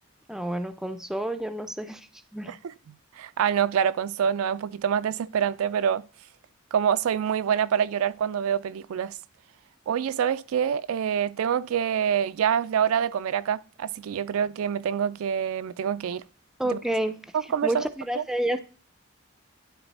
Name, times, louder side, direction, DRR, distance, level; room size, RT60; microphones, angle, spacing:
voice 1, 0.3-2.1 2.3-2.5 16.6-17.2 17.6-18.6, right 1 dB, ahead, 0.4 m, -29 dB
voice 2, 2.5-6.0 6.7-9.2 9.9-16.2 16.6-16.8 17.3-17.9 18.1-18.2, right 8 dB, 75° right, 0.3 m, -26 dB
11.0 x 3.9 x 4.1 m
head